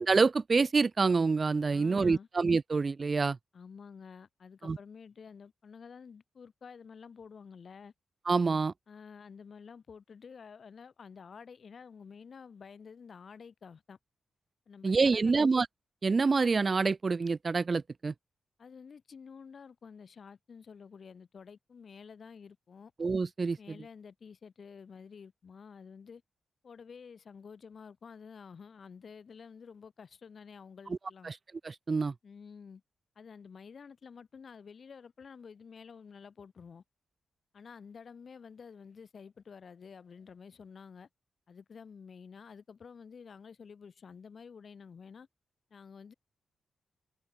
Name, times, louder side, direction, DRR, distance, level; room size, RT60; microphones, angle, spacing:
voice 1, 0.1-3.4 4.6-4.8 8.3-8.7 14.8-15.7 16.0-18.1 23.0-23.6 31.2-31.4 31.6-32.1, right 4 dB, 45° right, 0.4 m, -27 dB
voice 2, 1.7-2.3 3.5-7.9 8.9-14.0 14.7-15.5 18.6-22.9 23.6-26.2 26.6-31.3 32.2-32.8 33.1-36.8 37.5-41.1 41.5-45.3 45.7-46.1, left 6 dB, 60° left, 3.4 m, -50 dB
cardioid pair, 70°, 0 cm